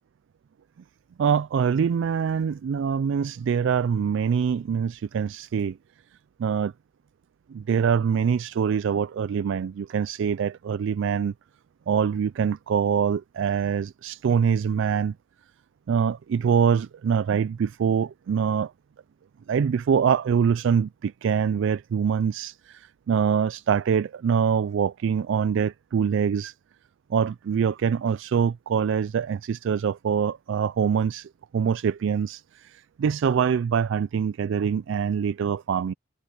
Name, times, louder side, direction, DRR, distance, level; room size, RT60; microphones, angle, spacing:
voice 1, 1.2-5.8 6.4-6.7 7.5-11.3 11.9-15.1 15.9-18.7 19.5-26.5 27.1-35.9, right 7 dB, 65° right, 0.3 m, -24 dB
head